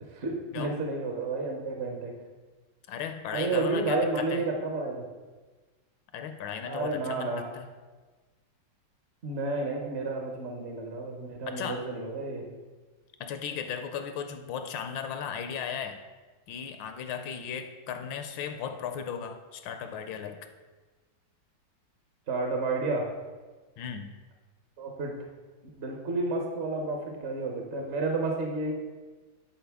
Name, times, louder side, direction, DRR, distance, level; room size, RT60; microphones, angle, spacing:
voice 1, 0.0-2.1 3.3-5.1 6.6-7.4 9.2-12.5 22.3-23.1 24.8-25.2 25.8-28.7, right 3 dB, 55° right, 1 dB, 0.7 m, -31 dB
voice 2, 2.9-4.5 6.1-7.7 11.5-11.8 13.2-16.0 16.5-20.5 23.8-24.1, left 7 dB, 80° left, 8 dB, 1.3 m, -36 dB
10.0 x 4.3 x 3.5 m, 1.3 s
omnidirectional pair, 2.2 m